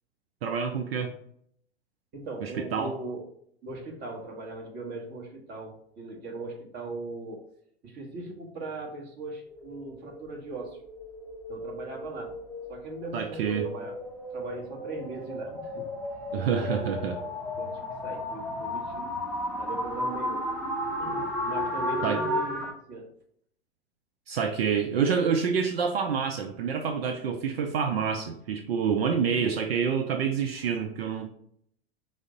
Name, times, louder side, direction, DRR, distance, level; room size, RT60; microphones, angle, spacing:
voice 1, 0.4-1.1 2.4-3.0 13.1-13.7 16.3-17.2 22.0-22.2 24.3-31.3, right 6 dB, 65° right, 5 dB, 0.5 m, -27 dB
voice 2, 2.1-3.3 3.6-7.5 7.8-10.8 11.5-12.3 12.7-13.9 14.3-15.9 16.6-17.3 17.6-19.1 19.6-20.5 21.0-23.1, right 2 dB, 30° right, 1 dB, 1.0 m, -39 dB
sound 1, 9.5-22.7, left 1 dB, ahead, 0.6 m, -34 dB
4.9 x 2.0 x 3.7 m, 0.67 s
figure-of-eight pair, 100°, 32 cm